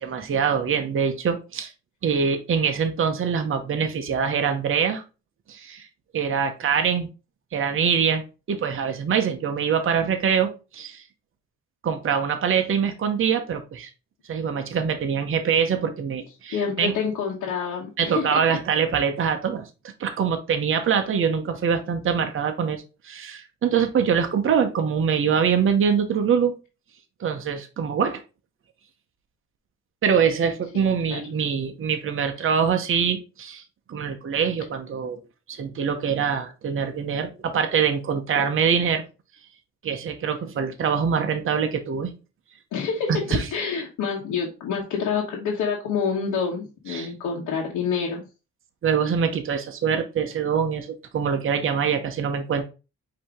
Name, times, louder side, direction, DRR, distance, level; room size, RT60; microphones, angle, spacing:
voice 1, 0.0-1.7 2.0-5.0 5.5-5.9 6.1-7.1 7.5-11.0 11.8-13.9 14.3-16.9 18.0-19.7 20.0-26.5 27.2-28.2 30.0-33.6 33.9-35.2 35.5-39.0 39.8-42.1 43.1-43.5 46.9-47.1 48.8-52.6, right 7 dB, 45° right, 6 dB, 0.8 m, -24 dB
voice 2, 16.5-18.4 30.7-30.8 31.1-31.2 38.3-38.5 42.7-48.2, left 6 dB, 85° left, -3 dB, 1.1 m, -27 dB
4.9 x 2.9 x 3.5 m, 0.31 s
cardioid pair, 90°, 30 cm